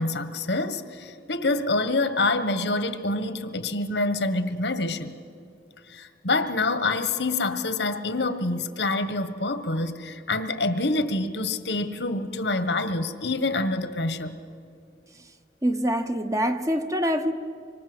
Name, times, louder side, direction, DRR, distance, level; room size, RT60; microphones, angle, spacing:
voice 1, 0.0-5.1 5.9-14.3, left 2 dB, 75° left, 1.5 m, -26 dB
voice 2, 15.6-17.3, equal, 20° right, 1.0 m, -25 dB
26.0 x 24.0 x 8.1 m
head